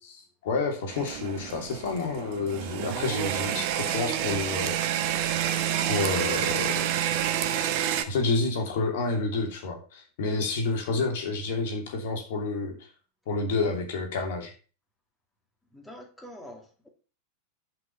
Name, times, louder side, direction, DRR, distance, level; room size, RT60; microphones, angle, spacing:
voice 1, 0.0-4.8 5.9-6.7 8.1-12.8 13.3-14.5, left 3 dB, 55° left, 3 dB, 2.7 m, -29 dB
sound 1, 0.9-8.0, right 10 dB, 45° right, 1.1 m, -28 dB
voice 2, 15.7-16.9, equal, 5° left, 1 dB, 2.3 m, -45 dB
11.0 x 5.3 x 5.5 m, 0.37 s
figure-of-eight pair, 90°, 0 cm